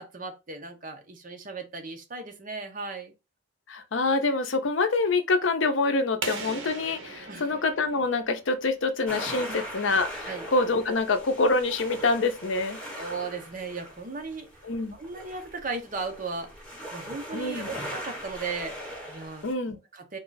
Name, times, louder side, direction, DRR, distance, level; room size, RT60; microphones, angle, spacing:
voice 1, 0.0-3.1 7.3-7.5 9.5-9.6 10.3-10.5 13.0-14.5 14.9-16.6 16.9-19.5 19.9-20.2, right 4 dB, 40° right, 0.8 m, -36 dB
voice 2, 3.7-12.8 14.6-14.9 17.3-17.7 19.4-19.8, left 3 dB, 70° left, 0.6 m, -26 dB
sound 1, 6.2-8.9, right 4 dB, 70° right, 1.0 m, -39 dB
sound 2, 9.1-19.5, equal, 5° left, 1.3 m, -40 dB
3.8 x 2.4 x 3.9 m
head